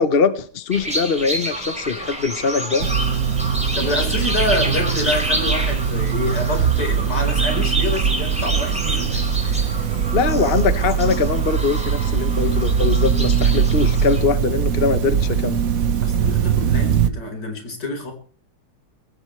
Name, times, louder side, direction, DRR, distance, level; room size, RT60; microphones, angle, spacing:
voice 1, 0.0-2.9 10.1-15.6, left 5 dB, 40° left, 11 dB, 1.2 m, -22 dB
sound 1, 0.7-14.2, right 1 dB, 5° right, 4.5 m, -29 dB
sound 2, 2.8-17.1, right 7 dB, 60° right, 1.4 m, -21 dB
voice 2, 3.7-9.9 16.0-18.1, left 1 dB, 85° left, 3 dB, 5.3 m, -27 dB
23.0 x 15.5 x 3.3 m, 0.42 s
omnidirectional pair, 1.8 m